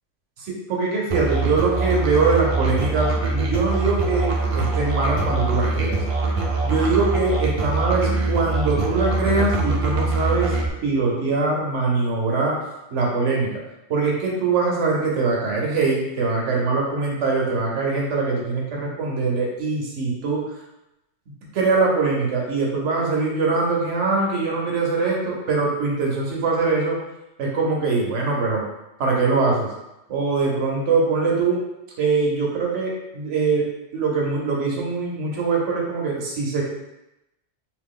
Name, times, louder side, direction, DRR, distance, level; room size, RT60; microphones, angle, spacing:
voice 1, 0.5-6.0 6.6-10.5 10.8-12.6 12.9-13.5 13.9-20.4 21.5-27.0 27.4-28.6 29.0-29.7 30.1-31.6 32.0-33.7 33.9-36.6, right 4 dB, 85° right, -2 dB, 1.2 m, -22 dB
Musical instrument, 1.1-10.7, right 3 dB, 45° right, 0.5 m, -23 dB
3.0 x 2.9 x 3.6 m, 0.91 s
omnidirectional pair, 1.2 m